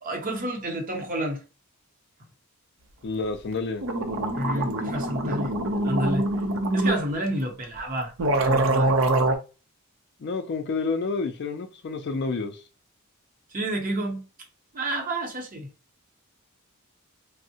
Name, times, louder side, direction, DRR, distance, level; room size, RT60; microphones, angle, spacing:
voice 1, 0.0-1.4 4.3-5.5 5.8-6.3 6.7-8.9 13.5-14.2 14.7-15.7, right 1 dB, 40° right, 0.8 m, -29 dB
voice 2, 3.0-3.8 10.2-12.6, left 4 dB, 50° left, 0.4 m, -29 dB
sound 1, 3.5-3.6 3.8-7.0 7.8-7.9 8.2-9.4, right 2 dB, 65° right, 0.6 m, -24 dB
3.5 x 2.0 x 2.7 m
head